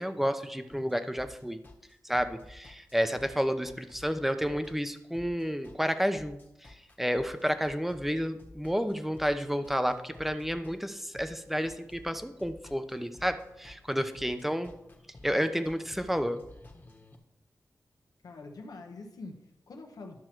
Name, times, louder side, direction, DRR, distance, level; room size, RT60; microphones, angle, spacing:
voice 1, 0.0-1.6 2.0-6.4 7.0-14.7 15.2-16.4, equal, 5° right, 9 dB, 0.7 m, -30 dB
sound 1, 0.7-17.2, left 2 dB, 30° left, 1.5 m, -53 dB
voice 2, 18.2-20.2, left 3 dB, 85° left, 4 dB, 1.2 m, -45 dB
11.0 x 6.1 x 4.5 m, 0.86 s
wide cardioid pair, 85°, 6 cm